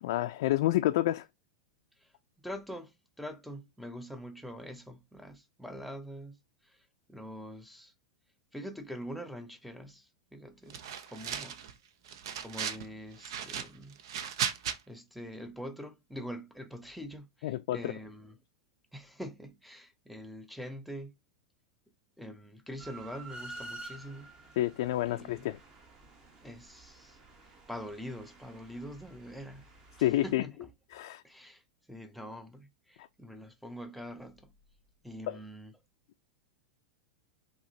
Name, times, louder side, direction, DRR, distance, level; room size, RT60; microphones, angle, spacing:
voice 1, 0.0-1.3 17.4-17.9 24.6-25.6 30.0-30.4 30.9-31.2 35.3-35.4, left 14 dB, 65° left, 0.4 m, -29 dB
voice 2, 2.4-6.4 6.6-7.9 8.5-10.8 11.1-11.6 12.4-14.0 14.9-18.4 18.9-21.1 22.2-24.3 25.0-25.5 26.4-29.7 30.0-30.7 31.2-31.6 31.9-34.5 35.0-35.8, equal, ahead, 0.5 m, -44 dB
sound 1, 10.7-11.7 12.1-12.9 13.2-14.8, right 8 dB, 70° right, 0.6 m, -36 dB
sound 2, 22.8-30.4, right 2 dB, 25° right, 1.0 m, -50 dB
5.6 x 2.9 x 2.7 m
supercardioid pair, 145°, 3 cm